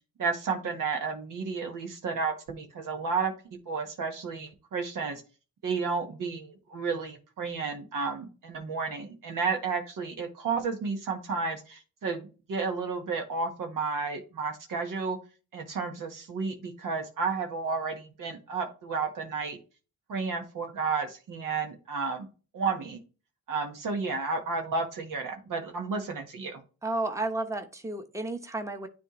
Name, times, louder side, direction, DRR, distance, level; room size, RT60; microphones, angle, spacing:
voice 1, 0.2-3.3 3.6-5.2 5.6-15.2 15.5-19.6 20.1-22.3 22.5-23.0 23.5-26.6, right 4 dB, 80° right, 3 dB, 1.7 m, -32 dB
voice 2, 26.8-28.9, right 2 dB, 10° right, 6 dB, 1.1 m, -32 dB
9.8 x 3.4 x 3.1 m, 0.33 s
cardioid pair, 75°, 32 cm